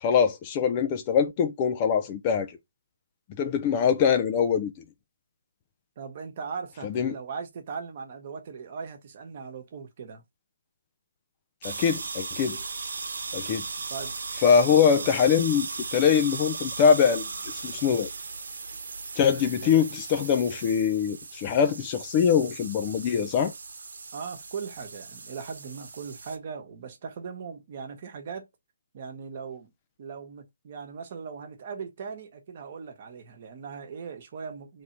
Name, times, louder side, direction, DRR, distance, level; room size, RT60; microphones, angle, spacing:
voice 1, 0.0-2.5 3.4-4.7 6.8-7.1 11.6-12.6 13.3-13.6 14.4-18.1 19.2-23.5, left 7 dB, 25° left, 0.4 m, -23 dB
voice 2, 6.0-10.2 13.9-14.1 14.9-15.1 19.6-19.9 24.1-28.5 28.9-29.7 30.0-34.8, right 6 dB, 35° right, 1.1 m, -39 dB
sound 1, 11.6-26.4, right 4 dB, 60° right, 1.0 m, -37 dB
3.5 x 2.7 x 4.4 m
hypercardioid pair, 160°, 0 cm